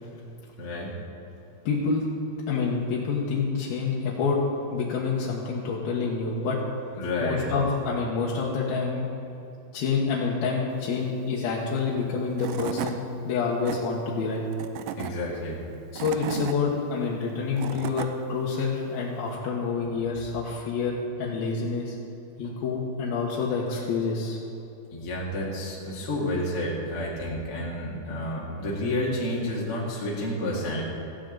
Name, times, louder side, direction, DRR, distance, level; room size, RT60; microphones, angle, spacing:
voice 1, 0.6-1.0 7.0-7.5 15.0-15.6 22.4-22.5 24.0-24.1 24.9-30.8, left 1 dB, 45° left, -5 dB, 2.4 m, -30 dB
voice 2, 1.7-2.1 2.5-4.4 4.7-6.6 7.2-9.1 9.7-14.4 15.9-20.9 21.2-21.9 22.4-24.4, left 5 dB, 70° left, -4 dB, 3.0 m, -27 dB
Tools / Wood, 12.0-12.1 12.4-13.0 13.4-13.8 14.5-15.1 15.7-16.6 17.3-18.1, right 11 dB, 85° right, 1.9 m, -33 dB
16.5 x 15.0 x 3.9 m, 2.8 s
omnidirectional pair, 4.6 m